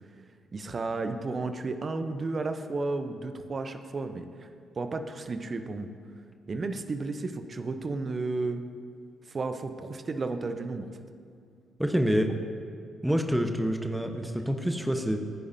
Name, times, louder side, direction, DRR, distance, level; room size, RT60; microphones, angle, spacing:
voice 1, 0.5-4.5 4.8-5.9 6.5-8.6 9.3-10.9, right 3 dB, 40° right, 8 dB, 0.9 m, -33 dB
voice 2, 11.8-12.3 13.0-15.2, equal, 5° right, 5 dB, 1.1 m, -27 dB
24.5 x 10.0 x 2.8 m, 2.3 s
figure-of-eight pair, 40°, 0 cm